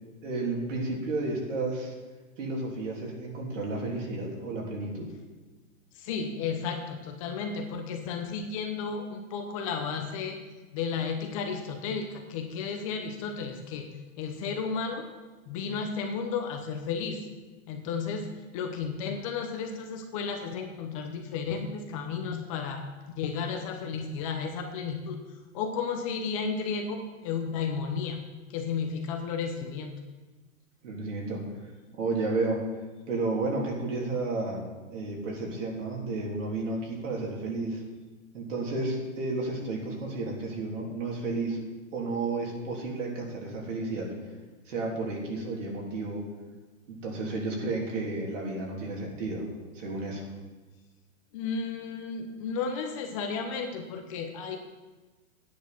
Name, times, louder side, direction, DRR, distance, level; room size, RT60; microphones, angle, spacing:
voice 1, 0.2-1.9 2.4-5.1 30.8-31.4 31.9-32.6 33.1-34.6 34.9-37.8 38.3-41.6 41.9-44.1 44.7-46.2 46.9-49.5 49.7-50.2, right 3 dB, 65° right, -1 dB, 3.4 m, -32 dB
voice 2, 5.9-10.4 10.7-13.9 14.2-15.1 15.5-17.3 17.7-18.3 18.5-22.8 23.2-28.2 28.5-29.9 51.3-54.6, left 5 dB, 25° left, 4 dB, 0.7 m, -33 dB
9.9 x 9.4 x 5.9 m, 1.2 s
hypercardioid pair, 165°, 40 cm